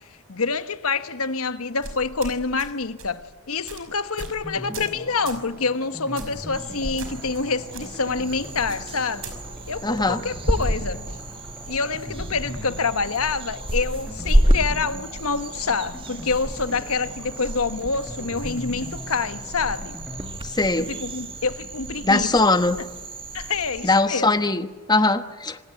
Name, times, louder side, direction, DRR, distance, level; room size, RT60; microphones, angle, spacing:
voice 1, 0.3-9.3 9.7-11.0 11.7-20.0 20.8-22.3 23.3-24.4, left 4 dB, 70° left, 1.3 m, -27 dB
sound 1, 1.8-2.7 3.0-3.2 3.7-3.8 4.2-4.4 4.7-5.0 5.3-5.5 6.2-6.4 7.0-7.4 7.7-7.8 8.7-9.4, right 4 dB, 60° right, 5.4 m, -38 dB
sound 2, 4.4-23.0 23.3-23.4 23.7-23.8, left 1 dB, 5° right, 5.4 m, -41 dB
sound 3, 6.5-24.0, equal, 25° right, 2.0 m, -29 dB
voice 2, 9.8-10.2 20.4-20.9 22.0-22.8 23.8-25.6, left 2 dB, 20° left, 1.1 m, -21 dB
26.5 x 19.0 x 9.4 m
head